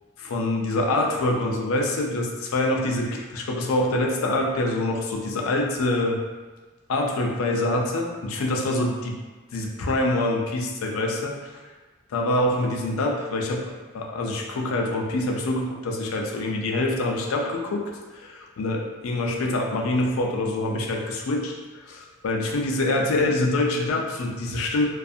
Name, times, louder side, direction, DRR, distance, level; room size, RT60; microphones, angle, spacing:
voice 1, 0.2-6.2 6.9-9.2 9.5-11.6 12.1-17.8 18.1-24.9, left 2 dB, 90° left, 1 dB, 0.4 m, -25 dB
2.4 x 2.3 x 2.6 m, 1.3 s
head